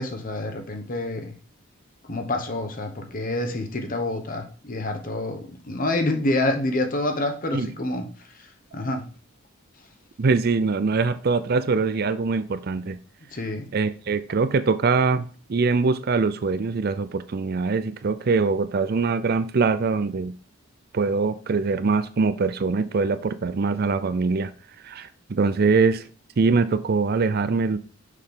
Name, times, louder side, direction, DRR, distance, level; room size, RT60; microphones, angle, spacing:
voice 1, 0.0-1.3 2.0-8.1 8.7-9.0 13.3-13.7, left 2 dB, 40° left, 1.1 m, -27 dB
voice 2, 10.2-13.0 13.7-20.3 20.9-24.5 24.8-26.0 26.4-27.8, right 4 dB, 50° right, 0.4 m, -23 dB
6.5 x 5.4 x 3.8 m
head